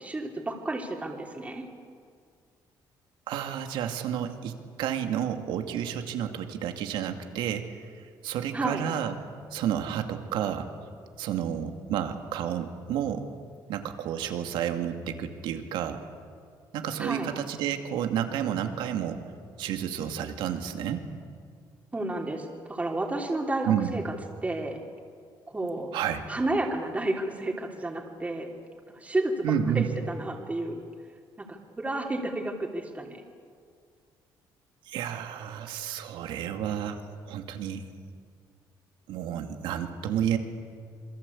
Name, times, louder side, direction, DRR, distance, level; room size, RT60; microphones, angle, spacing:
voice 1, 0.0-1.6 8.5-8.8 17.0-17.3 21.9-24.1 24.4-24.8 25.5-25.9 26.3-28.5 28.9-30.8 31.4-33.2, right 2 dB, 15° right, 0 dB, 3.3 m, -31 dB
voice 2, 3.3-4.5 4.8-7.7 8.2-9.1 9.5-10.7 11.2-13.3 13.7-16.0 16.7-19.2 19.6-21.1 23.7-23.9 25.9-26.2 29.4-29.9 34.9-37.0 37.3-37.8 39.1-40.4, right 9 dB, 90° right, 6 dB, 2.3 m, -30 dB
27.5 x 22.5 x 8.5 m, 2.1 s
cardioid pair, 105°, 8 cm